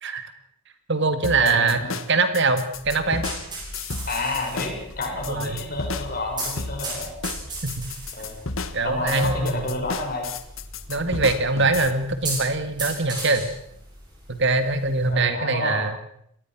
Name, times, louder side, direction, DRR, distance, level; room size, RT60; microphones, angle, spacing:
voice 1, 0.0-0.3 0.9-3.3 5.2-5.6 7.6-7.9 8.7-9.8 10.9-13.5 14.3-16.0, right 3 dB, 55° right, 10 dB, 2.0 m, -23 dB
sound 1, 1.2-11.9, left 4 dB, 65° left, 1.6 m, -33 dB
voice 2, 1.4-1.9 4.1-7.1 8.2-8.4 8.8-10.3 15.1-15.9, left 2 dB, 40° left, 1 dB, 6.5 m, -30 dB
sound 2, 2.7-15.1, right 2 dB, 20° right, 8.0 m, -37 dB
24.5 x 19.0 x 6.1 m, 0.70 s
head